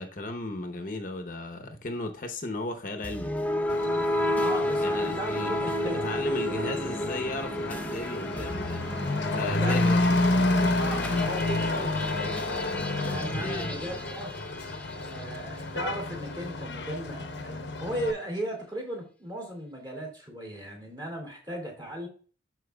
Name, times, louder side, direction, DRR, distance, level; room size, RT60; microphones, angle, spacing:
voice 1, 0.0-3.3 4.8-8.9 9.3-10.1 13.4-13.8, left 2 dB, 45° left, 5 dB, 0.9 m, -35 dB
sound 1, 3.0-15.4, left 1 dB, 10° left, 0.5 m, -32 dB
Truck / Accelerating revving vroom, 3.7-18.1, left 2 dB, 75° left, 0.9 m, -30 dB
voice 2, 4.4-6.1 9.6-10.0 10.8-14.3 14.6-22.1, right 1 dB, 25° right, 0 dB, 2.6 m, -37 dB
13.0 x 4.6 x 2.3 m, 0.39 s
head